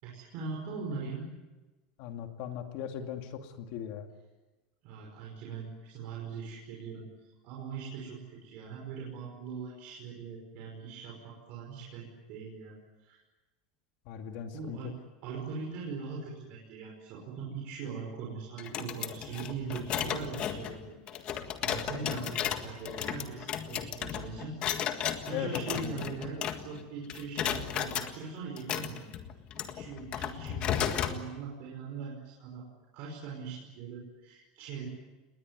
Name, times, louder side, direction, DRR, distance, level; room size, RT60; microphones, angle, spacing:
voice 1, 0.0-1.3 4.8-7.1 7.4-13.2 14.5-21.3 21.6-24.6 25.2-29.1 29.5-32.6 32.9-34.9, right 5 dB, 40° right, -1 dB, 5.4 m, -41 dB
voice 2, 2.0-4.1 14.1-14.8 22.0-22.1 25.3-26.2, left 8 dB, 45° left, 5 dB, 2.4 m, -38 dB
sound 1, 18.6-26.8 27.1-28.1 28.6-31.2, left 9 dB, 30° left, 1.7 m, -34 dB
28.5 x 20.5 x 9.7 m, 1.2 s
supercardioid pair, 180°, 4 cm